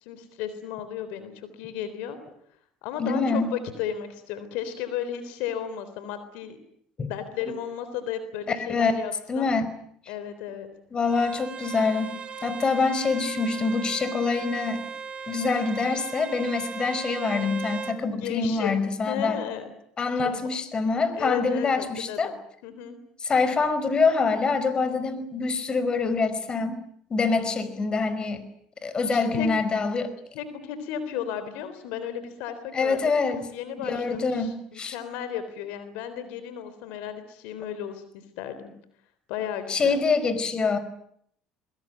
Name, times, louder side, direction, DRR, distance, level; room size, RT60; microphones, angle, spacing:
voice 1, 0.0-2.2 2.8-6.6 7.1-9.5 10.1-10.7 18.2-18.7 19.1-19.7 20.2-20.3 21.1-22.3 22.6-23.0 29.1-29.5 30.3-33.0 33.5-38.0 38.4-38.7 39.3-40.0, left 9 dB, 75° left, 11 dB, 3.7 m, -34 dB
voice 2, 3.0-3.6 7.0-7.1 8.5-8.9 9.3-9.7 10.9-12.2 12.4-14.8 15.3-19.4 20.0-22.3 23.2-26.8 27.1-28.5 28.8-30.1 32.7-33.5 33.8-35.0 39.7-40.8, left 4 dB, 35° left, 13 dB, 5.1 m, -25 dB
Bowed string instrument, 11.0-18.0, right 6 dB, 40° right, 3.8 m, -37 dB
23.0 x 22.5 x 9.2 m, 0.68 s
supercardioid pair, 85°, 3 cm